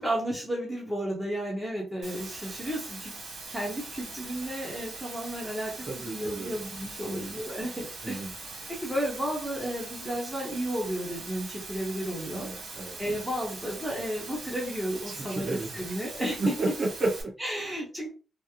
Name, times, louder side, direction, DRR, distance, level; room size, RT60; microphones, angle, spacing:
voice 1, 0.0-3.1 3.5-8.3 8.7-12.5 13.0-16.4 17.4-18.1, right 1 dB, ahead, -2 dB, 0.8 m, -33 dB
Water, 2.0-17.2, right 3 dB, 80° right, 1.3 m, -42 dB
voice 2, 5.8-6.5 7.0-7.3 8.0-8.3 12.3-13.0 15.1-15.9 16.4-17.3, right 2 dB, 45° right, -4 dB, 1.5 m, -32 dB
3.5 x 2.0 x 2.9 m, 0.33 s
wide cardioid pair, 170°, 0 cm